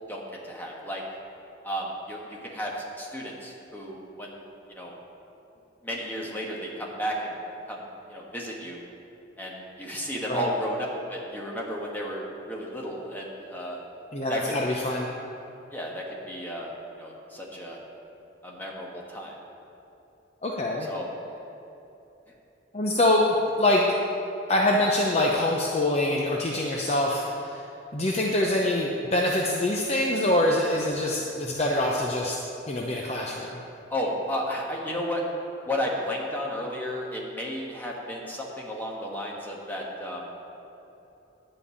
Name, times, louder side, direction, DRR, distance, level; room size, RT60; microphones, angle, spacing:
voice 1, 0.1-1.0 1.6-4.4 4.7-4.9 5.8-7.4 7.7-8.8 9.4-13.8 14.3-14.5 15.7-16.7 17.0-17.8 18.4-19.4 20.8-21.1 28.2-28.3 33.9-35.2 35.6-40.3, equal, 10° left, -3 dB, 1.5 m, -33 dB
voice 2, 14.1-15.1 20.4-20.9 22.7-23.8 24.5-27.6 27.9-32.4 32.7-33.5, left 1 dB, 35° left, -1 dB, 0.7 m, -24 dB
11.0 x 5.4 x 8.4 m, 3.0 s
head